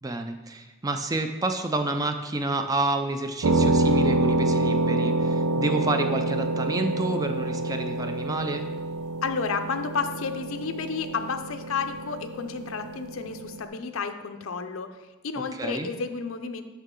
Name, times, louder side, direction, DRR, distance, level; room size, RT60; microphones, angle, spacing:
voice 1, 0.0-8.7 15.6-15.9, right 2 dB, 20° right, 7 dB, 0.4 m, -29 dB
sound 1, 3.4-13.6, right 2 dB, 85° right, 0.6 m, -27 dB
voice 2, 9.2-14.9 15.2-16.6, left 5 dB, 85° left, 8 dB, 0.6 m, -31 dB
8.2 x 5.6 x 3.8 m, 1.1 s
head